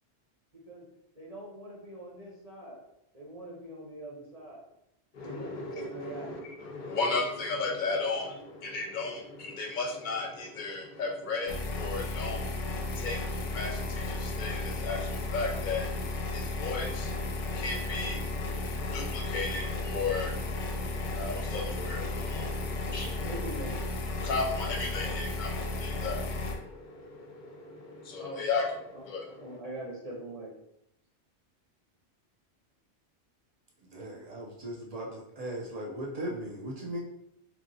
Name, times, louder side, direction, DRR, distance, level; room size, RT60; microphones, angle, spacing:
voice 1, 1.1-2.9 3.1-4.6 5.2-6.3 23.2-23.8 25.0-25.2 28.2-28.4 28.9-30.5, right 1 dB, 40° right, -6 dB, 0.8 m, -42 dB
voice 2, 5.1-23.6 24.1-29.6, left 3 dB, 55° left, 1 dB, 0.6 m, -35 dB
sound 1, 11.5-26.6, left 2 dB, 90° left, 0.9 m, -34 dB
voice 3, 33.9-37.0, right 1 dB, 60° right, -2 dB, 0.4 m, -38 dB
3.0 x 2.5 x 2.6 m, 0.79 s
omnidirectional pair, 1.2 m